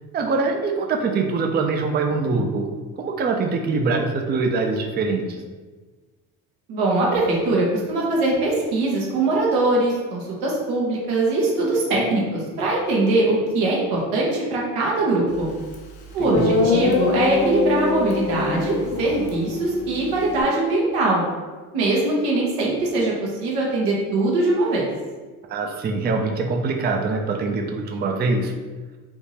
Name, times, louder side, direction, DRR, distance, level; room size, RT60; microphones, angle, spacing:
voice 1, 0.1-2.7 3.0-5.4 16.2-16.7 25.5-28.5, right 3 dB, 25° right, 3 dB, 0.4 m, -23 dB
voice 2, 6.7-15.5 16.1-21.2 21.7-24.9, right 2 dB, 85° right, -3 dB, 1.1 m, -22 dB
Guitar, 15.7-15.8 16.3-20.4, left 4 dB, 75° left, 0.8 m, -24 dB
3.5 x 2.6 x 2.9 m, 1.3 s
supercardioid pair, 75°, 42 cm